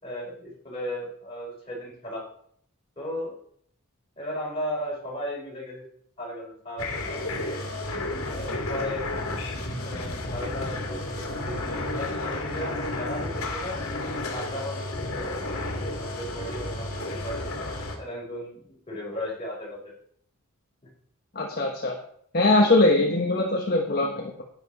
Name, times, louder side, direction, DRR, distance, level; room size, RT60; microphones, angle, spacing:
voice 1, 0.0-2.2 3.0-3.3 4.2-5.8 6.2-7.6 8.3-9.1 9.8-13.8 14.3-17.5 18.0-19.9, equal, 25° left, -4 dB, 4.7 m, -36 dB
sound 1, 6.8-18.0, left 2 dB, 85° left, 2.2 m, -32 dB
voice 2, 21.3-22.0 22.3-24.4, left 2 dB, 45° left, 0 dB, 1.2 m, -22 dB
10.5 x 9.2 x 4.2 m, 0.65 s
head